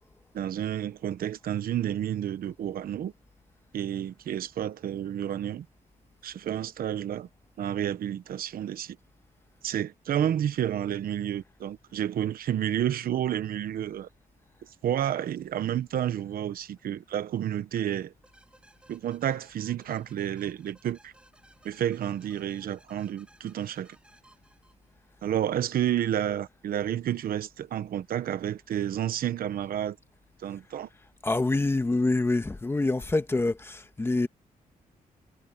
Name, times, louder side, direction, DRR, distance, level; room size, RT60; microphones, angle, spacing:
voice 1, 0.3-3.1 3.7-5.7 6.2-7.3 7.6-9.0 9.6-14.1 14.8-18.1 18.9-21.1 21.6-24.0 25.2-30.0 30.4-30.9, right 10 dB, 75° right, 1.0 m, -30 dB
sound 1, 18.2-25.1, right 1 dB, 5° right, 7.9 m, -60 dB
voice 2, 31.2-34.3, left 2 dB, 15° left, 1.5 m, -26 dB
wide cardioid pair, 150°, 15 cm